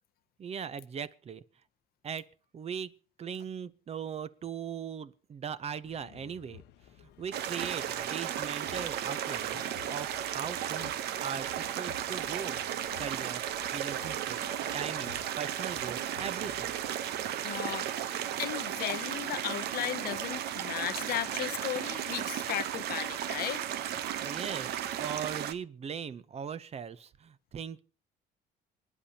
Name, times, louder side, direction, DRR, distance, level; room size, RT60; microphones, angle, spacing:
voice 1, 0.4-1.4 2.0-2.3 2.5-2.9 3.2-6.6 7.2-9.6 9.9-10.9 11.2-12.6 13.0-16.7 24.2-27.8, right 7 dB, 40° right, 0.7 m, -39 dB
Fez bazaar, 5.8-16.9, left 9 dB, 90° left, 0.9 m, -54 dB
sound 1, 7.3-25.5, right 10 dB, 75° right, 0.9 m, -35 dB
voice 2, 17.4-23.6, left 13 dB, 65° left, 0.7 m, -36 dB
25.5 x 10.0 x 2.9 m
cardioid pair, 110°, 17 cm